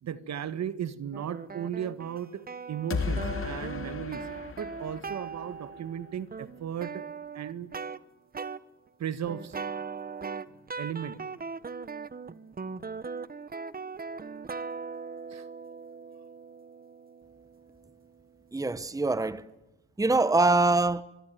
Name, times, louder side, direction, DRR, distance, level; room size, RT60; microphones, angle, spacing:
voice 1, 0.0-4.3 4.6-7.1 7.3-7.7 9.0-9.6 10.8-11.2 15.3-15.5, right 9 dB, 55° right, 1.7 m, -36 dB
sound 1, 1.1-8.0 8.3-8.6 9.2-18.3, right 5 dB, 25° right, 1.4 m, -40 dB
sound 2, 2.9-5.8, left 5 dB, 40° left, 3.4 m, -35 dB
voice 2, 18.5-19.4 20.0-21.0, right 3 dB, 10° right, 1.2 m, -24 dB
23.5 x 23.0 x 9.4 m
supercardioid pair, 75°, 33 cm